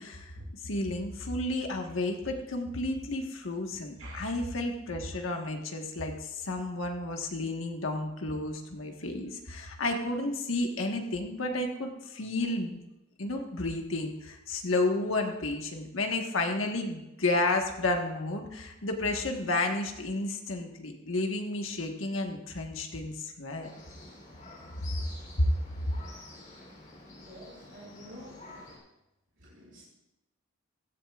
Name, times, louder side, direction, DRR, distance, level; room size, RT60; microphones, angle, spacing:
voice 1, 0.0-0.3 0.6-12.8 13.2-23.7 25.4-25.5, left 2 dB, 85° left, 3 dB, 1.4 m, -31 dB
sound 1, 23.6-28.8, left 2 dB, 40° left, 3.5 m, -49 dB
voice 2, 27.2-28.5 29.4-29.8, right 1 dB, 65° right, -5 dB, 2.5 m, -49 dB
16.0 x 12.5 x 2.5 m, 0.95 s
head